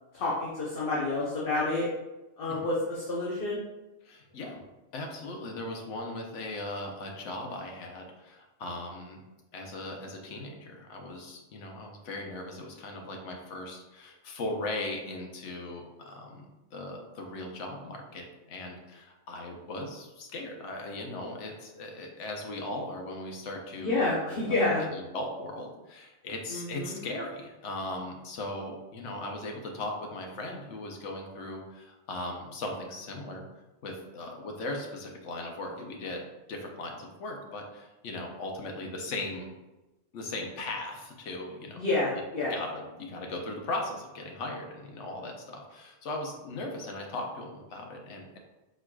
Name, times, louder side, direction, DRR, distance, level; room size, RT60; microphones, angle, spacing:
voice 1, 0.1-1.9 2.4-3.6 23.8-24.8 26.5-27.0 41.8-42.5, left 2 dB, 50° left, -6 dB, 1.0 m, -29 dB
voice 2, 4.0-4.6 4.9-9.2 9.5-33.5 33.8-36.2 36.5-39.5 40.1-41.8 42.5-48.4, left 2 dB, 75° left, 2 dB, 1.1 m, -38 dB
4.5 x 4.5 x 2.3 m, 1.1 s
omnidirectional pair, 1.3 m